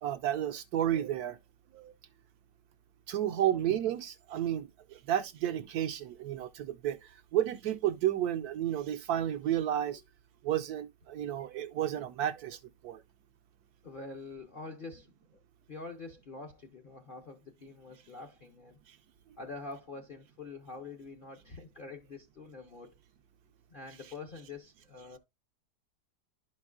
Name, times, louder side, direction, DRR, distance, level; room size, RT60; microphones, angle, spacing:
voice 1, 0.0-1.4 1.7-1.9 3.1-10.0 10.4-13.0 18.9-19.0, right 11 dB, 70° right, 1.0 m, -32 dB
voice 2, 13.8-15.1 15.7-18.8 19.4-22.9 23.7-25.2, left 3 dB, 45° left, 0.7 m, -45 dB
11.5 x 5.3 x 2.3 m
omnidirectional pair, 1.9 m